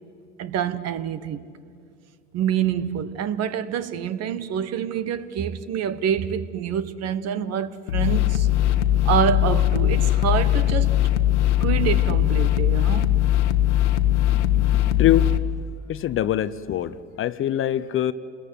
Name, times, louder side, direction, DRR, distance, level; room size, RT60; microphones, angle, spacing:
voice 1, 0.4-1.5 2.3-8.5 9.0-11.0 11.6-13.1, right 9 dB, 45° right, 1.3 m, -26 dB
sound 1, 7.9-15.4, left 13 dB, 70° left, 1.3 m, -20 dB
voice 2, 14.3-15.3 15.9-18.1, left 11 dB, 35° left, 0.8 m, -24 dB
29.0 x 21.0 x 9.3 m
figure-of-eight pair, 70°, 36 cm